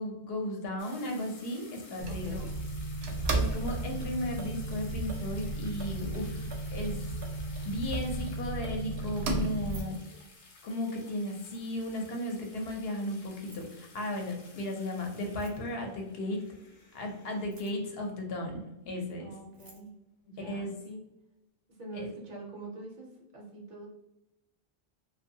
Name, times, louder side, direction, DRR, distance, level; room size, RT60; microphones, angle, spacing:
voice 1, 0.0-2.5 3.3-7.1 7.6-10.0 10.6-16.4 16.9-19.3 20.4-20.7 21.9-22.1, left 1 dB, 75° left, 1 dB, 0.8 m, -35 dB
sound 1, 0.8-17.5, left 3 dB, 50° left, 0.4 m, -54 dB
voice 2, 2.0-2.5 19.2-19.9 20.2-21.0 21.8-23.9, right 2 dB, 55° right, -1 dB, 0.7 m, -45 dB
sound 2, 2.0-9.8, right 2 dB, 85° right, 0.8 m, -34 dB
Keys jangling, 9.5-10.8 11.2-11.9 13.3-13.8 15.2-15.9 17.3-18.0 19.1-19.2 19.4-19.9, right 2 dB, 35° right, 0.3 m, -57 dB
2.6 x 2.3 x 2.6 m, 0.93 s
omnidirectional pair, 1.0 m